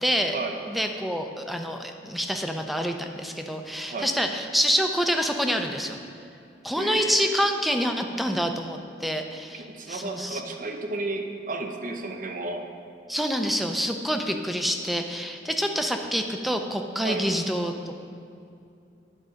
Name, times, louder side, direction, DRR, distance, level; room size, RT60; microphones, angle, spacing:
voice 1, 0.0-0.4 0.7-6.0 6.6-10.4 13.1-17.9, equal, ahead, 4 dB, 0.5 m, -27 dB
voice 2, 6.8-7.3 9.5-12.6 17.0-17.2, right 2 dB, 50° right, 4 dB, 0.7 m, -32 dB
11.0 x 3.9 x 5.1 m, 2.5 s
head